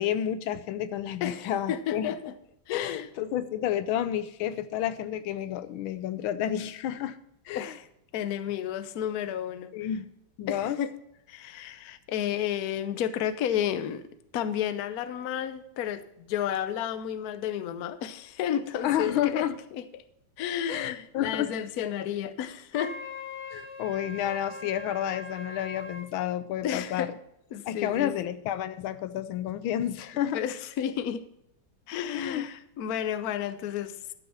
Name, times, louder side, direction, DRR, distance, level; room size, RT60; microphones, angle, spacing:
voice 1, 0.0-2.1 2.7-7.2 7.5-7.7 9.7-10.1 10.4-10.8 18.8-19.6 20.7-21.5 23.5-27.1 27.7-30.4 32.1-32.5, left 11 dB, 85° left, 13 dB, 1.5 m, -30 dB
voice 2, 1.2-2.3 2.7-3.1 7.5-7.9 8.1-9.7 10.5-10.9 11.3-14.0 14.3-19.5 19.7-20.0 20.4-23.0 26.6-27.2 27.5-28.3 30.3-31.2 31.9-34.0, left 9 dB, 60° left, 12 dB, 1.1 m, -32 dB
Wind instrument woodwind instrument, 22.7-26.1, left 3 dB, 10° left, 0.8 m, -41 dB
12.0 x 6.4 x 5.5 m, 0.79 s
omnidirectional pair, 2.2 m